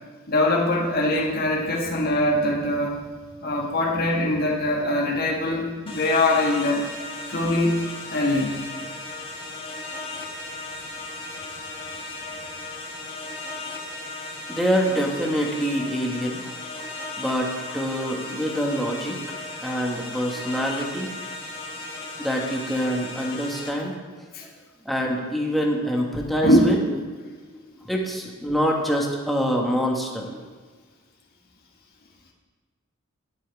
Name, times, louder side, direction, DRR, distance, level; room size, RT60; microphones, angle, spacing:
voice 1, 0.3-3.0 3.4-6.9 7.3-8.6 24.3-24.4 26.4-27.0, left 1 dB, 45° left, 0 dB, 1.4 m, -22 dB
sound 1, 5.9-23.7, left 2 dB, 25° left, 1.4 m, -36 dB
voice 2, 14.5-16.9 17.2-19.3 19.6-21.1 22.2-23.9 24.8-26.8 27.8-30.5, equal, ahead, -1 dB, 1.4 m, -25 dB
10.5 x 8.4 x 4.6 m, 1.5 s
head